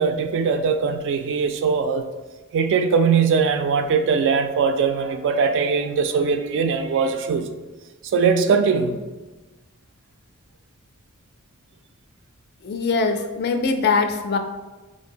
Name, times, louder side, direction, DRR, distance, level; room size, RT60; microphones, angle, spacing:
voice 1, 0.0-2.1 2.5-7.5 8.1-9.0, right 5 dB, 60° right, 8 dB, 0.3 m, -21 dB
voice 2, 12.6-14.4, left 4 dB, 50° left, 6 dB, 0.3 m, -22 dB
4.2 x 2.5 x 2.8 m, 1.2 s
head